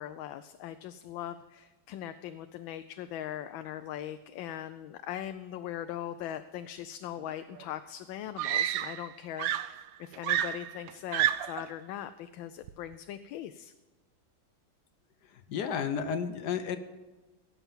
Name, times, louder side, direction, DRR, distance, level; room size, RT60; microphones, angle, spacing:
voice 1, 0.0-13.7, left 11 dB, 85° left, 10 dB, 1.3 m, -40 dB
Screaming, 7.5-7.6 8.4-9.1 9.4-11.7 12.7-12.9, right 12 dB, 80° right, 0.8 m, -30 dB
voice 2, 15.2-16.8, left 7 dB, 65° left, 10 dB, 1.3 m, -32 dB
17.0 x 6.9 x 7.3 m, 1.2 s
omnidirectional pair, 2.1 m